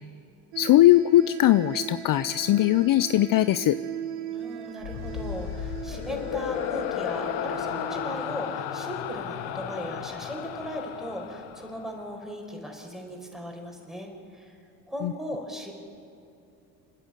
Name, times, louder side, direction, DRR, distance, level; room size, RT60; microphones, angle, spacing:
sound 1, 0.5-11.0, right 9 dB, 75° right, 1.7 m, -40 dB
voice 1, 0.6-3.8 15.0-15.1, left 14 dB, 50° left, 15 dB, 0.5 m, -20 dB
voice 2, 4.3-14.6 14.9-15.7, equal, ahead, 1 dB, 5.0 m, -37 dB
sound 2, 4.8-12.2, left 10 dB, 80° left, 1.2 m, -34 dB
28.5 x 10.0 x 9.2 m, 2.7 s
supercardioid pair, 75°, 45 cm